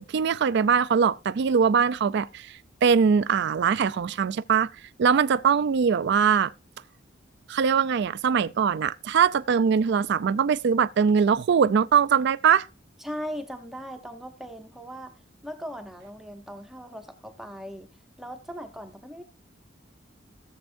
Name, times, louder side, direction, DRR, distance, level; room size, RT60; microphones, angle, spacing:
voice 1, 0.0-4.7 5.0-6.5 7.5-12.7, right 6 dB, 60° right, 0.4 m, -22 dB
voice 2, 13.0-15.1 15.4-17.9 18.2-19.2, equal, ahead, 0.7 m, -38 dB
16.5 x 7.2 x 2.5 m
head